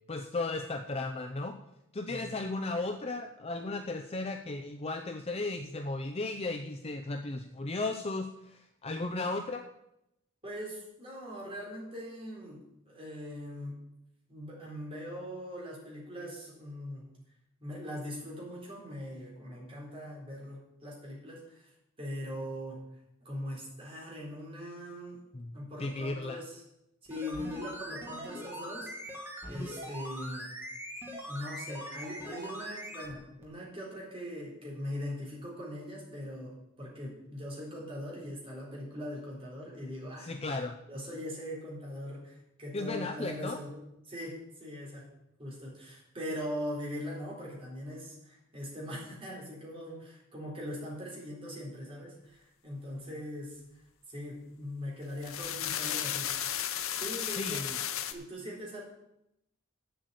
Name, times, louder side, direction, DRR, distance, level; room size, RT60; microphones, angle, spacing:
voice 1, 0.1-1.6 1.9-9.6 25.3-26.4 40.2-40.8 42.7-43.6 57.3-57.8, left 2 dB, 30° left, 5 dB, 0.5 m, -35 dB
voice 2, 10.4-13.9 14.3-17.1 17.6-21.7 22.0-22.8 23.2-25.2 25.5-26.6 27.0-28.9 29.4-30.5 31.3-40.4 40.9-43.8 44.1-45.1 45.4-53.6 54.1-56.3 57.0-57.6 58.1-58.8, equal, 30° right, -4 dB, 4.0 m, -41 dB
sound 1, 27.1-33.1 33.4-33.5, equal, 10° right, 1.9 m, -42 dB
sound 2, 55.0-58.1, left 10 dB, 90° left, 0.8 m, -34 dB
7.9 x 7.8 x 8.3 m, 0.84 s
head